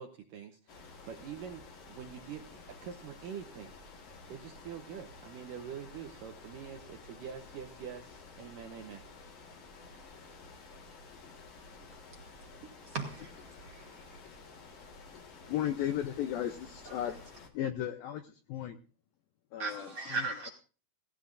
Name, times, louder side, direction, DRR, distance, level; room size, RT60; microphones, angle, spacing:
voice 1, 0.0-3.7 4.3-9.1, right 8 dB, 80° right, 2.0 m, -45 dB
sound 1, 0.7-17.5, left 3 dB, 50° left, 2.0 m, -52 dB
voice 2, 12.9-14.2 16.9-17.1 19.6-20.5, right 4 dB, 55° right, 1.8 m, -38 dB
voice 3, 15.1-18.8 19.5-20.5, left 11 dB, 80° left, 2.1 m, -36 dB
17.0 x 16.5 x 2.5 m
omnidirectional pair, 5.0 m